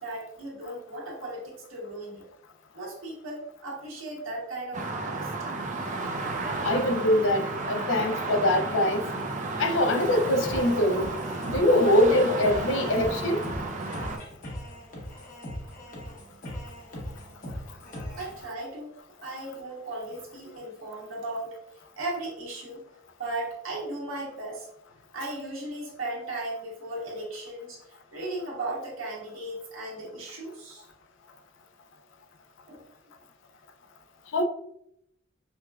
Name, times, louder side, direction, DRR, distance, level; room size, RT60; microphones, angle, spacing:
voice 1, 0.0-2.2 2.7-5.5 18.2-18.9 19.2-21.6 22.0-22.8 23.2-24.7 25.1-30.9 32.7-32.8, right 2 dB, 75° right, -5 dB, 1.4 m, -36 dB
sound 1, 4.7-14.2, right 3 dB, 40° right, 0.5 m, -32 dB
voice 2, 6.6-9.1 9.6-11.1 11.5-13.4 34.3-34.4, left 1 dB, 65° left, 7 dB, 0.4 m, -23 dB
sound 2, 10.4-18.4, equal, 45° left, 0.9 m, -40 dB
5.3 x 2.2 x 2.2 m, 0.76 s
head